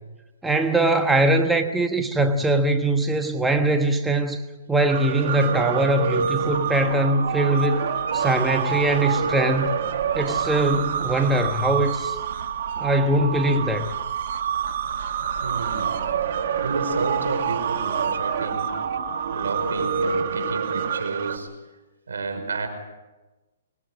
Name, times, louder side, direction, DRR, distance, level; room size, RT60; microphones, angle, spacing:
voice 1, 0.4-4.4 4.7-7.8 8.1-9.8 10.1-12.2 12.8-13.9, right 2 dB, 5° right, 6 dB, 1.2 m, -22 dB
sound 1, 4.9-21.4, right 7 dB, 55° right, 2.2 m, -27 dB
voice 2, 15.4-18.8 19.3-21.5 22.1-22.7, right 4 dB, 85° right, 7 dB, 5.5 m, -31 dB
25.5 x 21.0 x 6.4 m, 1.1 s
hypercardioid pair, 140°, 0 cm